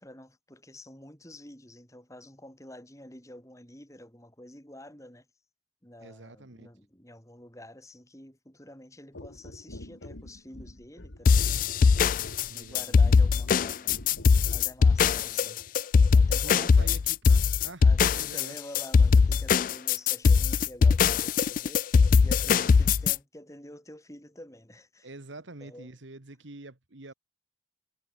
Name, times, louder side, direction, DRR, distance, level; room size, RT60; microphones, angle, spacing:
voice 1, 0.0-5.3 5.8-11.9 12.5-14.1 14.5-17.0 17.8-25.1 25.6-25.9, left 1 dB, 15° left, 7.0 m, -48 dB
voice 2, 6.0-6.7 12.5-13.6 14.8-15.5 16.3-17.9 18.1-18.6 22.5-22.9 25.0-27.1, right 2 dB, 80° right, 1.8 m, -47 dB
sound 1, 9.1-14.7 15.6-15.7, left 1 dB, 90° left, 2.2 m, -45 dB
sound 2, 11.3-23.2, left 5 dB, 45° left, 0.3 m, -21 dB
head